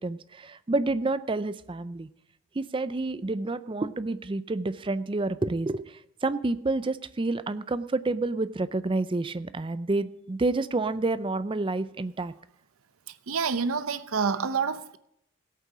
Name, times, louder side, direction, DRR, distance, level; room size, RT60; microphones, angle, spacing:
voice 1, 0.0-2.1 2.5-12.3, right 2 dB, 25° right, 0.4 m, -29 dB
voice 2, 13.1-15.0, right 5 dB, 80° right, 0.7 m, -28 dB
17.0 x 8.4 x 4.8 m
head